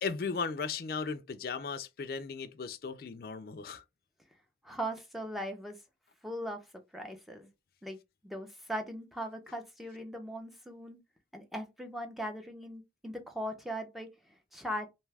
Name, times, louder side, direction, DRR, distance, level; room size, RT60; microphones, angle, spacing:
voice 1, 0.0-3.8, left 5 dB, 55° left, 0.4 m, -36 dB
voice 2, 4.6-5.8 6.2-6.6 6.9-7.5 7.8-8.0 8.2-11.0 11.3-14.1 14.5-14.9, equal, ahead, 0.5 m, -39 dB
2.7 x 2.3 x 3.2 m
head